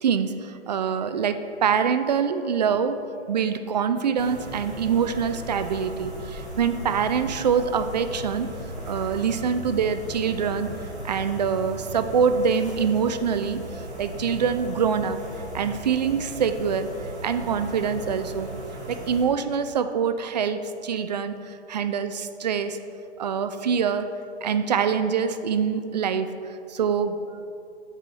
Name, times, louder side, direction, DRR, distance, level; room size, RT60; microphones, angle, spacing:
voice 1, 0.0-8.5 8.9-10.7 11.0-15.2 15.5-17.0 17.2-18.5 18.9-22.8 23.2-24.1 24.4-26.3 26.7-27.2, right 6 dB, 40° right, 10 dB, 0.4 m, -25 dB
sound 1, 4.2-19.2, equal, 10° right, 1.4 m, -37 dB
6.5 x 4.8 x 5.7 m, 2.5 s
figure-of-eight pair, 135°, 34 cm